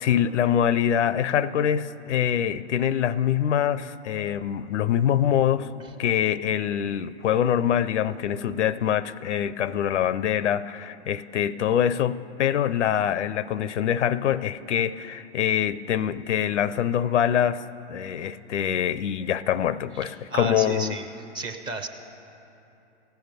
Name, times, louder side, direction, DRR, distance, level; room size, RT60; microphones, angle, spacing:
voice 1, 0.0-5.7 6.0-17.6 17.9-21.0, left 9 dB, 75° left, 17 dB, 0.6 m, -24 dB
voice 2, 20.0-21.1 21.3-21.9, right 4 dB, 15° right, 5 dB, 0.5 m, -33 dB
16.0 x 9.2 x 6.7 m, 2.9 s
hypercardioid pair, 125°, 36 cm